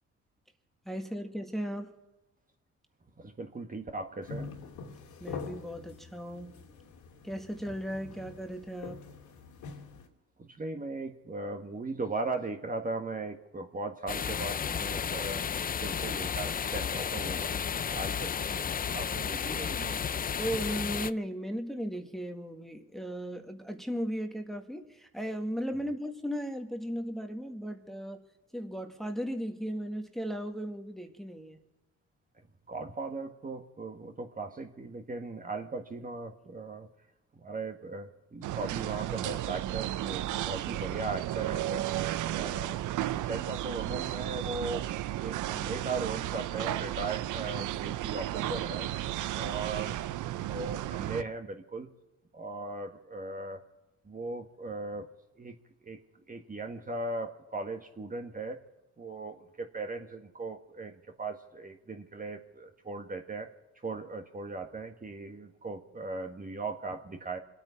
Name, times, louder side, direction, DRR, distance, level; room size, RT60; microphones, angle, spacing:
voice 1, 0.9-1.9 5.2-6.6 7.2-9.1 20.4-28.2 28.5-31.6, equal, ahead, 4 dB, 1.7 m, -36 dB
voice 2, 3.2-4.5 10.4-15.4 15.8-17.6 17.9-18.7 18.9-20.0 32.7-36.9 37.4-41.8 42.3-44.8 45.2-48.9 49.3-50.0 50.4-51.9 52.3-53.6 54.0-55.1 55.4-55.6 55.8-56.0 56.3-58.6 59.0-63.5 63.8-67.4, right 3 dB, 25° right, 5 dB, 1.7 m, -38 dB
sound 1, 4.2-10.1, left 4 dB, 75° left, 2.8 m, -45 dB
sound 2, 14.1-21.1, left 7 dB, 30° left, 0.5 m, -33 dB
sound 3, 38.4-51.2, right 14 dB, 80° right, 0.6 m, -34 dB
25.5 x 9.1 x 5.8 m, 1.0 s
cardioid pair, 90°, 30 cm